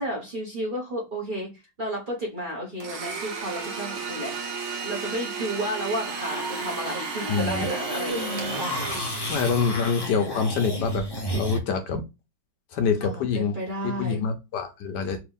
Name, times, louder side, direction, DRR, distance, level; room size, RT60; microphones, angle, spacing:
voice 1, 0.0-1.5 1.8-4.3 4.8-8.3 9.2-9.4 13.0-14.2, right 1 dB, 35° right, -2 dB, 1.0 m, -32 dB
Domestic sounds home sounds, 2.8-9.9, right 5 dB, 75° right, 1.6 m, -34 dB
sound 1, 6.1-11.6, equal, 35° left, 0.3 m, -32 dB
voice 2, 7.3-7.7 9.3-11.1 11.3-12.0 12.7-13.5 13.8-15.2, left 5 dB, 70° left, 7 dB, 1.2 m, -26 dB
3.5 x 2.9 x 3.4 m, 0.25 s
omnidirectional pair, 2.0 m